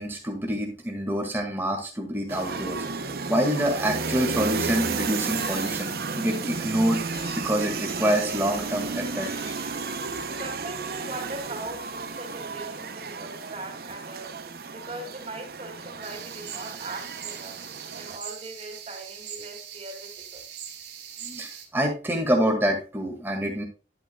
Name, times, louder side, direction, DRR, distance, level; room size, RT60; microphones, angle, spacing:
voice 1, 0.0-7.0 7.4-9.3 21.2-23.6, equal, 10° right, 1 dB, 1.9 m, -26 dB
sound 1, 2.3-18.2, right 4 dB, 55° right, 0.7 m, -33 dB
Gull seagull, 5.1-10.2, left 2 dB, 65° left, 3.8 m, -47 dB
voice 2, 10.4-14.4 14.7-17.6 17.9-20.4, right 2 dB, 35° right, 2 dB, 2.4 m, -40 dB
sound 2, 16.0-21.7, right 9 dB, 70° right, 2.0 m, -41 dB
10.5 x 8.4 x 2.3 m, 0.32 s
head